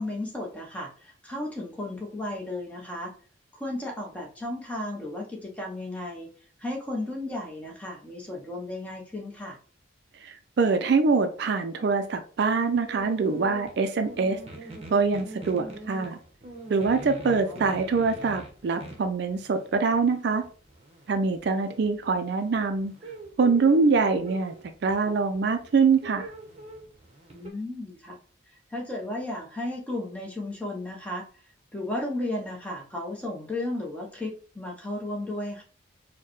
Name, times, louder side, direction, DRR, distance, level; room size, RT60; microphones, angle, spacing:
voice 1, 0.0-3.1 3.5-6.3 6.6-9.6 17.3-17.8 27.3-28.2 28.7-31.3 31.7-35.6, left 1 dB, 5° left, -1 dB, 0.7 m, -34 dB
voice 2, 10.2-14.4 14.9-16.2 16.7-20.4 21.1-22.9 23.4-24.5 24.8-26.3, right 4 dB, 55° right, 8 dB, 0.4 m, -24 dB
sound 1, 12.6-27.5, right 2 dB, 30° right, 0.8 m, -44 dB
4.6 x 2.1 x 3.0 m, 0.40 s
head